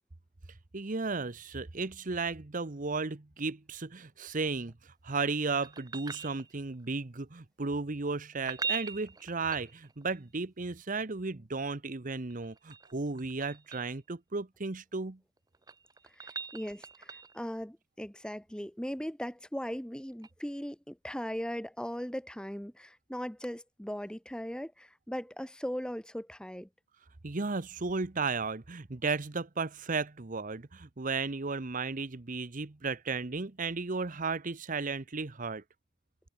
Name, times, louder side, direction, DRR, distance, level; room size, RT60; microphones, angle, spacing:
voice 1, 0.7-15.2 27.2-35.6, right 4 dB, 40° right, 0.9 m, -34 dB
sound 1, 5.6-6.9 8.3-10.2 12.3-14.0 15.4-17.5 20.2-20.3, right 5 dB, 20° right, 0.6 m, -41 dB
voice 2, 16.1-26.7, equal, 5° left, 1.2 m, -39 dB
head